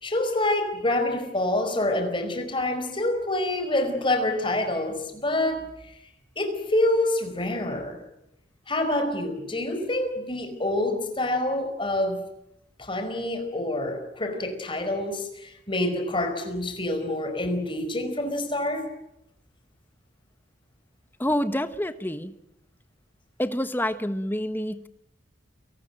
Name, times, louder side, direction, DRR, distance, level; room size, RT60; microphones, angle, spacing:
voice 1, 0.0-5.7 6.4-8.0 8.7-12.2 12.8-18.9, left 1 dB, 25° left, 4.8 m, -27 dB
voice 2, 21.2-22.3 23.4-24.9, left 1 dB, 10° left, 1.2 m, -27 dB
30.0 x 18.5 x 9.1 m
head